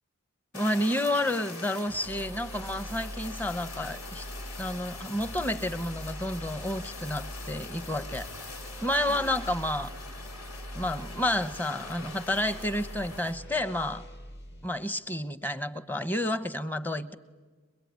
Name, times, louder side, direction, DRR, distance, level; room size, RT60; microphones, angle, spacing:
Fire, 0.5-13.4, left 3 dB, 75° left, 5.0 m, -43 dB
voice 1, 0.5-4.3 4.6-8.5 8.8-9.9 10.7-14.0 14.6-17.1, left 1 dB, 10° left, 14 dB, 1.0 m, -30 dB
sound 1, 1.9-14.7, equal, 50° left, 1.9 m, -43 dB
27.0 x 22.0 x 9.6 m, 1.4 s
head